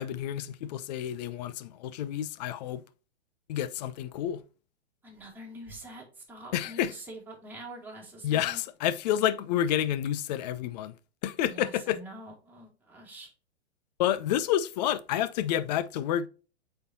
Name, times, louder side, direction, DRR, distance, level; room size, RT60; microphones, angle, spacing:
voice 1, 0.0-2.8 3.5-4.4 6.5-6.9 8.2-10.9 11.2-12.0 14.0-16.3, left 11 dB, 40° left, 0.6 m, -29 dB
voice 2, 5.0-8.6 11.5-13.3, right 1 dB, 5° right, 2.5 m, -45 dB
8.0 x 4.5 x 2.7 m
figure-of-eight pair, 110°, 33 cm